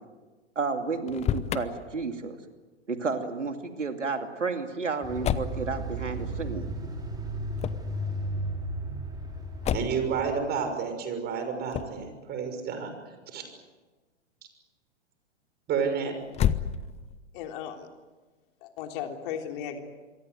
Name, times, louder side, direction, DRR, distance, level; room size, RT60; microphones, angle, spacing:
voice 1, 0.6-2.4 2.9-6.7, right 4 dB, 85° right, 6 dB, 2.7 m, -31 dB
Motor vehicle (road), 1.0-1.7 5.2-5.6 7.5-7.9 9.6-10.1 11.7-12.0 16.3-17.1, left 10 dB, 20° left, 0.9 m, -29 dB
sound 1, 5.0-10.5, right 1 dB, 10° right, 5.7 m, -34 dB
voice 2, 9.7-12.9 13.3-13.4 15.7-16.1, right 6 dB, 25° right, 6 dB, 6.4 m, -30 dB
voice 3, 17.3-17.9 18.6-19.8, left 8 dB, 45° left, 4 dB, 3.5 m, -36 dB
27.0 x 23.5 x 8.0 m, 1.2 s
figure-of-eight pair, 110°, 36 cm